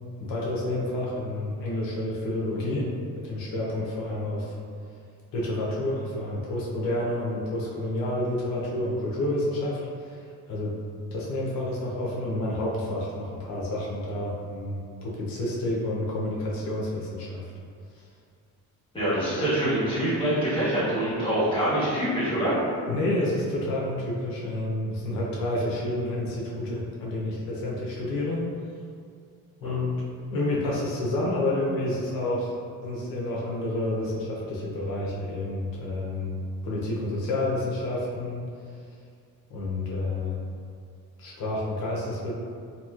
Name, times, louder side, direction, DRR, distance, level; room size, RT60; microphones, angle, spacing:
voice 1, 0.2-2.9 3.2-4.5 5.3-10.2 10.5-10.8 11.1-17.4 22.9-28.4 29.6-30.0 30.3-32.6 32.8-36.4 36.6-38.4 39.5-40.4 41.2-42.3, left 1 dB, 90° left, -5 dB, 0.7 m, -29 dB
voice 2, 18.9-22.5 29.6-29.8, right 1 dB, 15° left, -12 dB, 1.5 m, -25 dB
2.9 x 2.7 x 2.4 m, 2.2 s
cardioid pair, 130°, 33 cm